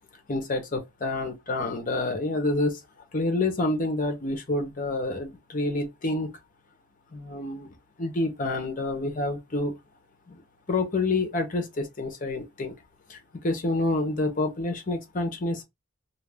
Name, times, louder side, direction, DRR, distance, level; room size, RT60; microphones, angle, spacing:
voice 1, 0.3-2.8 3.1-6.4 7.1-9.7 10.3-10.4 10.7-12.7 13.1-15.6, left 2 dB, 35° left, 0.6 m, -28 dB
2.3 x 2.2 x 3.3 m
head